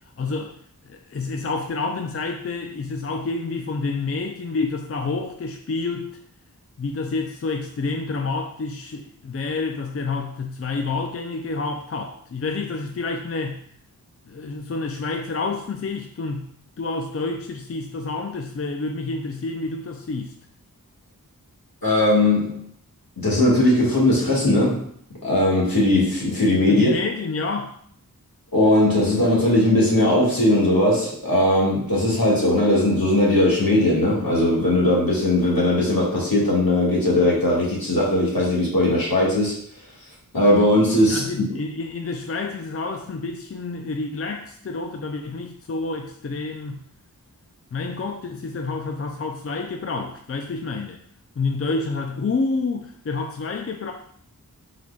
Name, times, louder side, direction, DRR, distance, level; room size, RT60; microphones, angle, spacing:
voice 1, 0.2-0.5 0.9-6.1 6.8-13.6 14.2-16.5 16.8-20.4 26.7-27.8 41.1-46.8 47.7-51.0 51.4-53.9, left 3 dB, 40° left, 3 dB, 0.4 m, -28 dB
voice 2, 21.8-22.7 23.2-24.8 25.2-26.9 28.5-39.6 40.3-41.2, left 1 dB, 75° left, -6 dB, 1.7 m, -19 dB
4.7 x 4.2 x 2.3 m, 0.62 s
wide cardioid pair, 45°, 36 cm